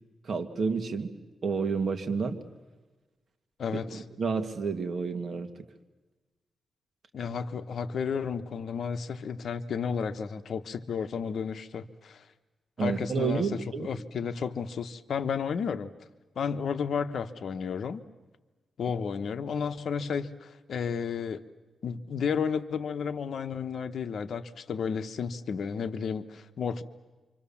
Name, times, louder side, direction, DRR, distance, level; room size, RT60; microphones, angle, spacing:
voice 1, 0.2-1.1 1.4-2.4 3.9-5.5 12.8-13.9, right 5 dB, 50° right, 5 dB, 2.1 m, -30 dB
voice 2, 3.6-4.0 7.1-12.2 12.8-15.9 16.4-18.0 18.8-21.4 21.8-26.8, left 6 dB, 65° left, 10 dB, 1.1 m, -32 dB
28.5 x 25.5 x 7.2 m, 1.2 s
wide cardioid pair, 115°, 0 cm